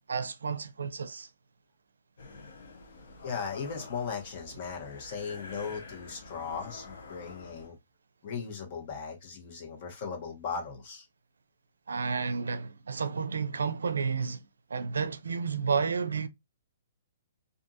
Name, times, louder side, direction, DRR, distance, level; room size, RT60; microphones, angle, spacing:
voice 1, 0.1-1.3 11.9-14.4 14.7-16.3, right 5 dB, 90° right, 0.4 m, -31 dB
sound 1, 2.2-7.7, left 3 dB, 75° left, 0.9 m, -48 dB
voice 2, 3.2-7.7 8.2-11.1, left 6 dB, 45° left, 1.2 m, -37 dB
2.6 x 2.5 x 2.4 m
hypercardioid pair, 145°, 0 cm